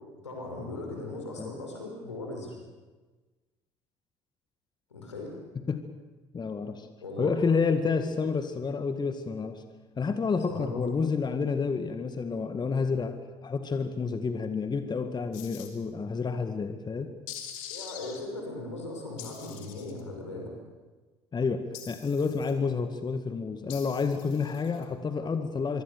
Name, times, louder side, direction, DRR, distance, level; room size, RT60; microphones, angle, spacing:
voice 1, 0.2-2.6 4.9-5.3 7.0-7.3 10.5-10.8 17.7-20.5, left 2 dB, 85° left, 1 dB, 5.9 m, -38 dB
voice 2, 6.3-6.9 7.2-9.6 10.0-17.1 21.3-25.8, left 5 dB, 30° left, 9 dB, 1.9 m, -29 dB
sound 1, 15.3-15.7 17.3-18.2 19.2-20.0 21.7-22.5 23.7-24.8, left 9 dB, 65° left, 3.4 m, -44 dB
25.0 x 24.5 x 6.9 m, 1.3 s
figure-of-eight pair, 60°, 15 cm